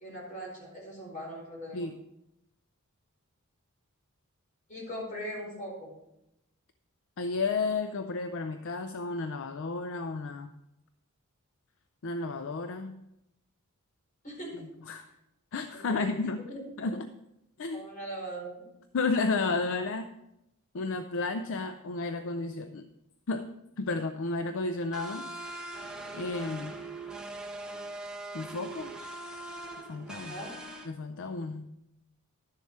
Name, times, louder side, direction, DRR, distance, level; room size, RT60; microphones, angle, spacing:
voice 1, 0.0-1.9 4.7-5.9 14.2-14.7 15.7-16.2 16.5-17.0 17.7-18.6 30.1-30.5, right 1 dB, 35° left, -3 dB, 4.6 m, -40 dB
voice 2, 7.2-10.5 12.0-13.0 14.9-15.1 15.5-16.5 16.8-17.1 17.6-17.9 18.9-20.1 20.7-22.9 23.3-23.5 23.8-25.3 26.1-26.7 28.3-28.9 29.9-30.4 30.8-31.7, left 3 dB, 60° left, 9 dB, 0.5 m, -32 dB
sound 1, 24.9-30.9, right 2 dB, 5° right, 1.1 m, -41 dB
11.5 x 7.2 x 4.7 m, 0.86 s
head